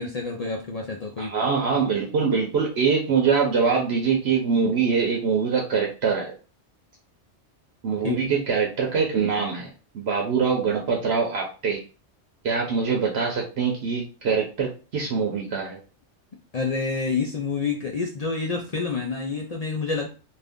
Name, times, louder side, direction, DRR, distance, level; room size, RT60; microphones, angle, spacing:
voice 1, 0.0-1.4 8.0-8.2 16.5-20.1, left 4 dB, 55° left, 0 dB, 0.4 m, -28 dB
voice 2, 1.2-6.3 7.8-11.8 12.4-15.8, right 5 dB, 65° right, -1 dB, 0.9 m, -24 dB
2.6 x 2.4 x 3.4 m, 0.34 s
omnidirectional pair, 1.2 m